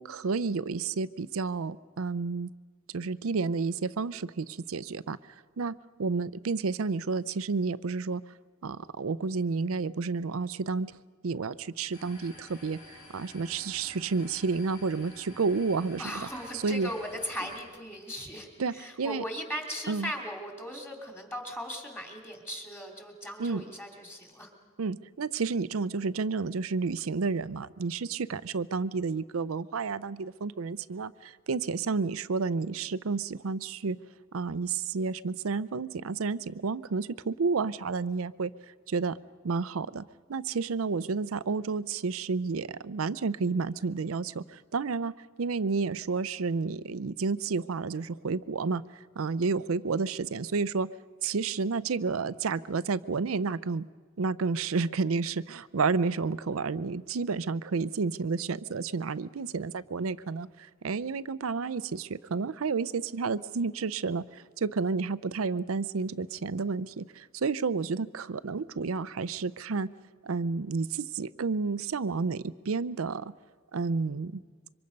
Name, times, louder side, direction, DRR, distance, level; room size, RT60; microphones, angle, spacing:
voice 1, 0.0-2.5 2.9-5.2 5.6-8.2 8.6-11.0 11.2-12.8 13.1-16.3 16.5-16.9 18.6-19.2 19.9-20.1 23.4-23.6 24.8-34.0 34.3-38.5 38.9-39.2 39.4-45.1 45.4-48.8 49.2-51.0 51.2-53.9 54.2-69.9 70.2-73.3 73.7-74.4, right 4 dB, 90° right, 16 dB, 0.6 m, -31 dB
sound 1, 11.9-17.6, left 2 dB, 80° left, 6.2 m, -51 dB
voice 2, 16.0-24.5, equal, 10° left, 2 dB, 3.0 m, -38 dB
26.0 x 24.0 x 5.3 m, 1.5 s
head